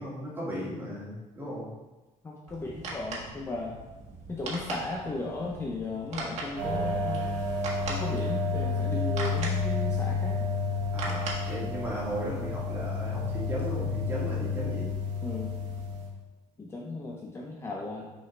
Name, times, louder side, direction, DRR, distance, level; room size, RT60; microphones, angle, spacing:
voice 1, 0.0-1.7 10.9-14.9, equal, 15° right, -7 dB, 2.0 m, -36 dB
voice 2, 2.2-3.8 4.3-7.3 7.9-10.5 15.2-15.6 16.6-18.1, left 2 dB, 20° left, -2 dB, 0.6 m, -36 dB
sound 1, 2.5-12.1, right 3 dB, 55° right, 1.6 m, -40 dB
sound 2, 6.6-16.1, left 3 dB, 85° right, 1.5 m, -30 dB
6.5 x 4.8 x 3.2 m, 1.2 s
cardioid pair, 145°, 14 cm